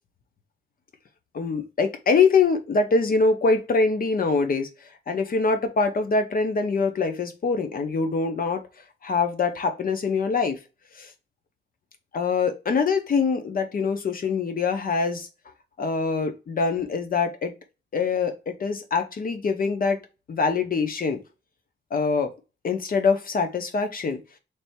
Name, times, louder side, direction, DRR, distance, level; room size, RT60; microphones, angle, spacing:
voice 1, 1.3-4.7 5.1-8.6 9.0-10.6 11.0-11.1 12.1-15.3 15.8-17.5 17.9-20.0 20.3-21.2 21.9-22.3 22.6-24.2, left 4 dB, 45° left, 6 dB, 0.7 m, -24 dB
3.3 x 2.7 x 4.2 m, 0.30 s
wide cardioid pair, 160°, 20 cm